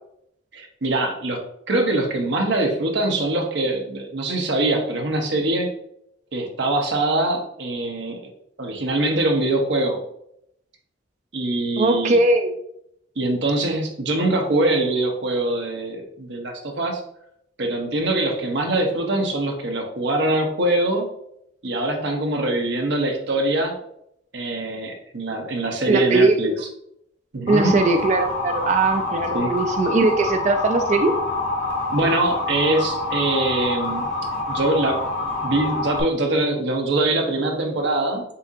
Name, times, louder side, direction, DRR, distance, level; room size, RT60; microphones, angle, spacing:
voice 1, 0.5-1.4 1.7-5.7 6.3-8.2 8.6-10.0 11.3-12.2 13.2-17.0 17.6-21.1 21.6-23.8 24.3-26.5 27.3-27.8 29.3-29.5 31.9-34.1 34.5-35.1 35.4-38.2, right 2 dB, 75° right, 2 dB, 0.9 m, -23 dB
voice 2, 11.8-12.6 25.9-26.6 27.5-31.2, right 3 dB, 40° right, 7 dB, 0.3 m, -20 dB
Motor vehicle (road) / Siren, 27.5-36.0, left 2 dB, 80° left, 1.6 m, -27 dB
6.8 x 2.7 x 2.5 m, 0.75 s
head